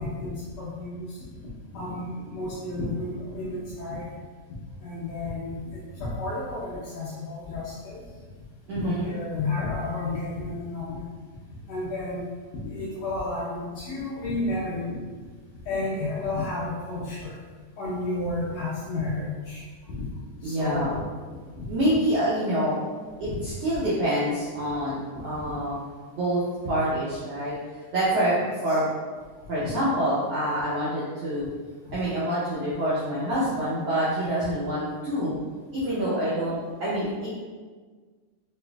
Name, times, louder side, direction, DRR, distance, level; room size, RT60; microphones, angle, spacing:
voice 1, 0.0-1.4 1.7-4.1 4.8-8.0 8.7-11.1 11.7-12.3 12.6-15.0 15.6-17.4 17.8-20.1 20.4-21.0 21.3-21.7 23.2-23.4 24.8-24.9 28.7-28.8 31.8-32.0, left 2 dB, 75° left, -8 dB, 1.6 m, -32 dB
voice 2, 8.7-9.1 20.4-20.9 21.7-22.8 23.2-25.9 26.2-28.9 29.5-31.4 31.9-35.3 35.7-37.3, right 1 dB, 80° right, -10 dB, 1.4 m, -26 dB
5.8 x 2.5 x 2.3 m, 1.5 s
omnidirectional pair, 3.6 m